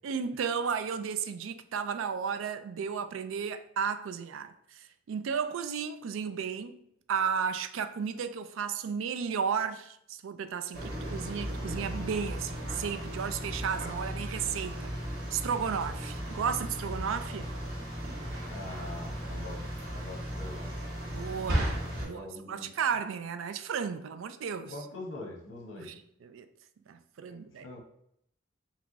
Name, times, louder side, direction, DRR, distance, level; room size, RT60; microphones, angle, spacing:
voice 1, 0.0-6.8 7.1-14.9 15.3-17.5 21.1-22.2 22.5-24.7 25.8-25.9 26.2-26.5 26.9-27.6, right 6 dB, 85° right, 0.4 m, -33 dB
sound 1, 10.7-22.0, equal, 50° right, 1.3 m, -36 dB
voice 2, 18.4-20.9 22.0-22.7 24.6-26.0 27.3-27.8, left 2 dB, 80° left, 1.1 m, -44 dB
3.4 x 3.0 x 3.9 m
head